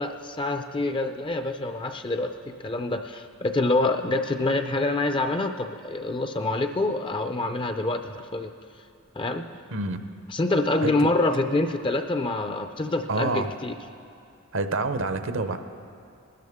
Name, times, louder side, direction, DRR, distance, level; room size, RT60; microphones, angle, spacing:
voice 1, 0.0-8.5 9.2-9.4 10.3-13.8, left 2 dB, 25° left, 7 dB, 0.4 m, -26 dB
voice 2, 9.7-10.1 10.8-10.9 13.1-13.5 14.5-15.6, right 3 dB, 65° right, 9 dB, 0.7 m, -27 dB
20.5 x 12.5 x 3.6 m, 2.4 s
head